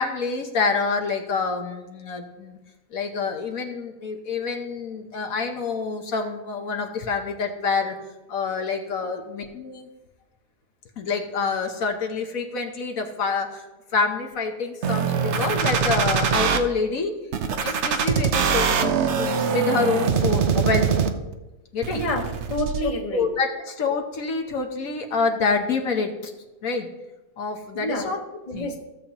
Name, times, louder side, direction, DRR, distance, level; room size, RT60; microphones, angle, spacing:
voice 1, 0.0-2.6 2.9-7.9 8.3-9.9 11.0-13.7 13.9-17.1 17.6-21.0 21.7-22.0 23.1-26.3 26.6-26.9 27.4-28.2 28.5-28.8, left 4 dB, 70° left, 4 dB, 1.3 m, -27 dB
sound 1, 14.8-16.6 17.3-21.3 21.8-22.8, right 6 dB, 60° right, 0.9 m, -23 dB
voice 2, 21.9-23.3 27.7-28.1 28.5-28.8, left 1 dB, 25° left, 2 dB, 1.2 m, -28 dB
16.0 x 7.0 x 2.9 m, 1.1 s
omnidirectional pair, 1.5 m